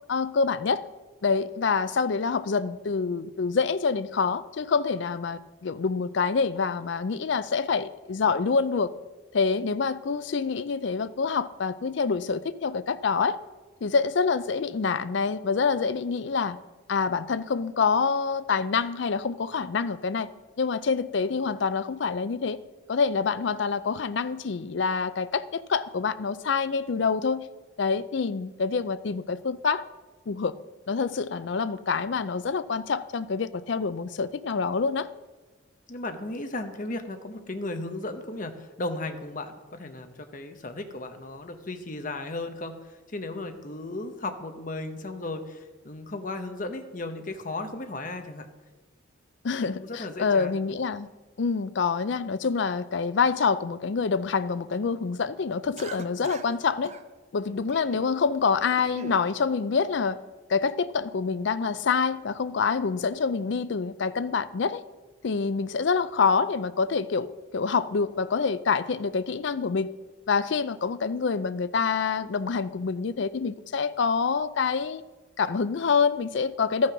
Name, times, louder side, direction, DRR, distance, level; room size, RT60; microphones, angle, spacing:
voice 1, 0.1-0.8 1.2-8.9 9.3-13.4 13.8-16.6 16.9-20.3 20.6-22.6 22.9-27.5 27.8-29.8 30.3-30.5 30.9-35.1 49.4-51.1 51.4-56.9 57.3-60.2 60.5-64.8 65.2-69.9 70.3-75.0 75.4-76.9, left 5 dB, 60° left, 15 dB, 0.4 m, -26 dB
voice 2, 35.9-48.5 49.7-50.5, left 2 dB, 40° left, 7 dB, 0.8 m, -35 dB
Cough, 55.8-56.6 56.8-57.0 57.7-58.1 58.5-59.2, right 4 dB, 35° right, 0.5 m, -42 dB
13.0 x 6.3 x 5.8 m, 1.2 s
head